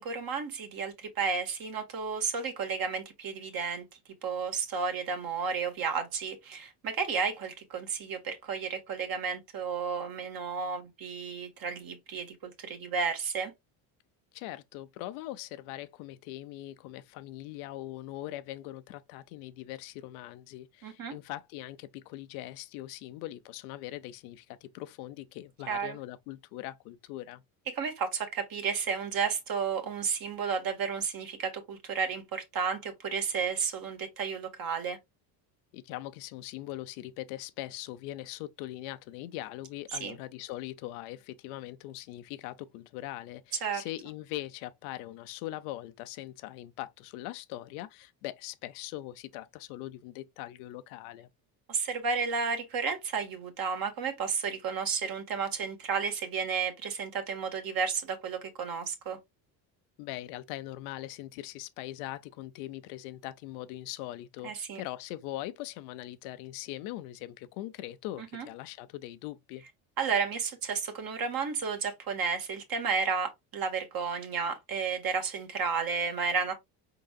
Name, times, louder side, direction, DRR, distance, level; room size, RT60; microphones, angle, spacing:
voice 1, 0.0-3.8 4.2-13.5 20.8-21.1 25.7-26.0 27.7-35.0 39.9-40.2 43.6-43.8 51.7-59.2 64.4-64.8 68.2-68.5 70.0-76.5, right 5 dB, 50° right, 1.6 m, -32 dB
voice 2, 14.3-27.4 35.7-51.3 60.0-69.6, left 15 dB, 85° left, 0.7 m, -41 dB
4.7 x 3.8 x 2.3 m
supercardioid pair, 95°, 44 cm